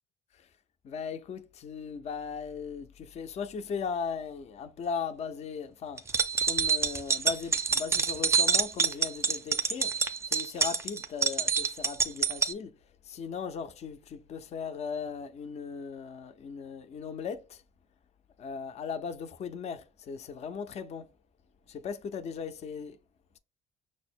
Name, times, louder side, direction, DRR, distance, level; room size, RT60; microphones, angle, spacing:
voice 1, 0.8-12.7 13.0-17.6 18.4-21.1 21.7-23.0, left 6 dB, 40° left, 0.4 m, -38 dB
sound 1, 6.0-12.5, right 5 dB, 15° right, 0.4 m, -27 dB
6.0 x 2.0 x 4.4 m
cardioid pair, 110°, 17 cm